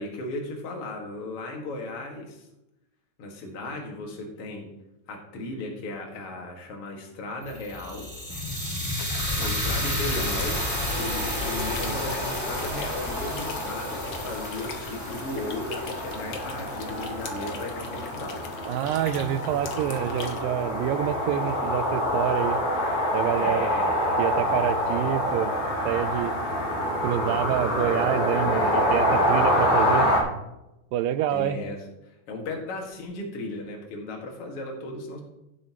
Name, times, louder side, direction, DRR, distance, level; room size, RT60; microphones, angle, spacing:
voice 1, 0.0-2.5 3.2-4.7 5.1-8.1 9.4-18.5 23.3-23.9 31.3-35.2, left 2 dB, 45° left, 0 dB, 2.5 m, -36 dB
sound 1, 7.5-17.6, left 1 dB, 10° left, 0.8 m, -32 dB
sound 2, 9.0-20.4, left 5 dB, 75° left, 1.1 m, -42 dB
sound 3, 10.5-30.2, equal, 90° left, 4.2 m, -27 dB
voice 2, 18.7-22.6 23.1-23.7 24.2-25.6 25.8-26.3 27.0-30.1 30.9-31.6, right 11 dB, 85° right, 12 dB, 2.3 m, -27 dB
17.0 x 6.9 x 3.0 m, 0.90 s
omnidirectional pair, 4.0 m